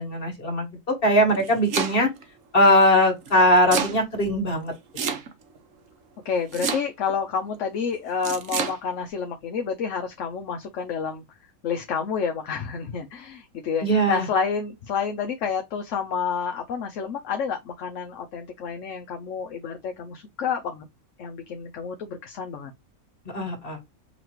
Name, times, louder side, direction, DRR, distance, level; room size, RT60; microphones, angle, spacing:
voice 1, 0.0-2.1 2.5-4.7 13.8-14.3 23.3-23.8, equal, 40° left, 2.0 m, -20 dB
Domestic sounds home sounds, 1.2-2.2 3.3-4.0 5.0-5.6 6.5-7.2 8.2-8.8, right 6 dB, 65° right, 1.2 m, -28 dB
voice 2, 6.2-11.2 11.6-20.9 21.2-22.7, left 6 dB, 60° left, 1.0 m, -29 dB
5.6 x 3.0 x 2.9 m
omnidirectional pair, 1.5 m